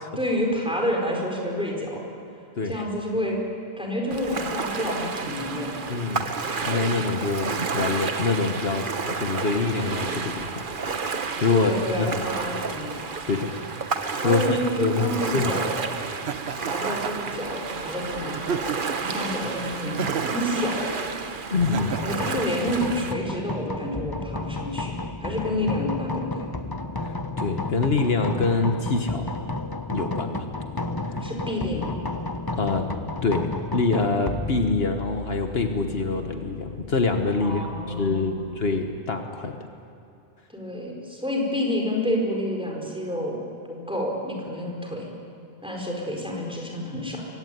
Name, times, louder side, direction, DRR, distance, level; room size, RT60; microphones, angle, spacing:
voice 1, 0.2-2.0 2.6-3.4 3.8-5.8 11.5-13.0 14.2-15.8 16.5-18.5 19.0-20.0 20.3-21.0 22.0-26.5 31.2-31.9 37.4-38.5 40.5-43.4 43.7-45.0 45.6-47.3, left 1 dB, 5° right, -1 dB, 4.8 m, -29 dB
Ocean, 4.1-23.1, right 4 dB, 50° right, 1.3 m, -31 dB
voice 2, 5.9-6.3 6.7-8.9 9.2-10.6 11.4-11.7 12.0-12.2 13.3-13.5 14.2-15.5 21.5-22.0 27.0-29.3 29.9-30.5 32.5-32.9 33.2-39.5, left 3 dB, 65° left, 5 dB, 1.5 m, -25 dB
Laughter, 16.3-17.3 18.4-19.1 20.0-20.5 21.6-22.4, right 7 dB, 70° right, 1.1 m, -31 dB
sound 1, 21.8-39.0, left 2 dB, 20° left, 0.9 m, -33 dB
23.0 x 17.0 x 9.4 m, 2.8 s
omnidirectional pair, 1.1 m